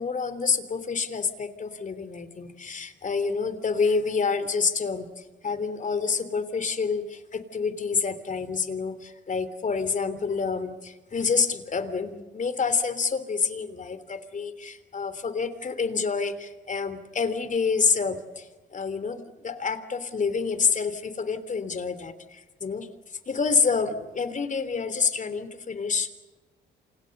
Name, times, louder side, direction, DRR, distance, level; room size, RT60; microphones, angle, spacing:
voice 1, 0.0-22.9 23.3-26.1, left 5 dB, 40° left, 12 dB, 3.3 m, -28 dB
29.0 x 27.0 x 6.8 m, 1.2 s
cardioid pair, 90°, 20 cm